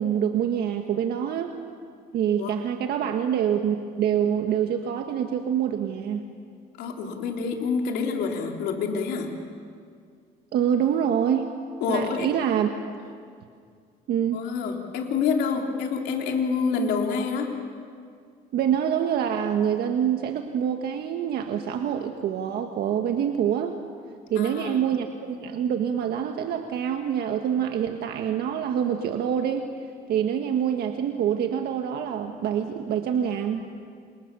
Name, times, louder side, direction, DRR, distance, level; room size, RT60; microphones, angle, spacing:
voice 1, 0.0-1.6 2.1-6.2 10.5-11.5 11.9-12.7 14.1-14.4 18.5-23.8 24.3-29.7 30.1-33.6, right 9 dB, 70° right, 5 dB, 1.6 m, -26 dB
voice 2, 6.8-9.3 11.8-12.3 14.3-17.5 24.4-24.8, left 5 dB, 80° left, 2 dB, 3.6 m, -27 dB
28.0 x 28.0 x 7.0 m, 2.2 s
cardioid pair, 110°, 17 cm